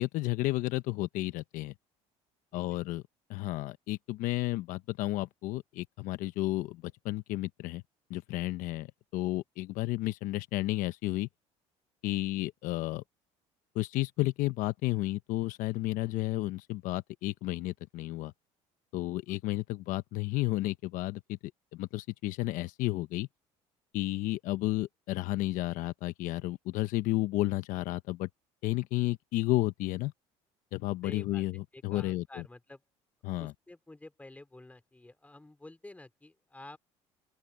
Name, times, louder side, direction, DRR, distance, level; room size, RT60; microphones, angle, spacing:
voice 1, 0.0-1.7 2.5-3.0 3.3-7.8 8.1-11.3 12.0-13.0 13.7-18.3 18.9-21.4 21.7-23.3 23.9-28.3 28.6-30.1 30.7-32.5 33.2-33.5, left 18 dB, 70° left, 1.0 m, -32 dB
voice 2, 31.0-31.4 31.7-32.8 33.4-36.8, left 2 dB, 10° left, 3.1 m, -50 dB
open air
supercardioid pair, 90°, 14 cm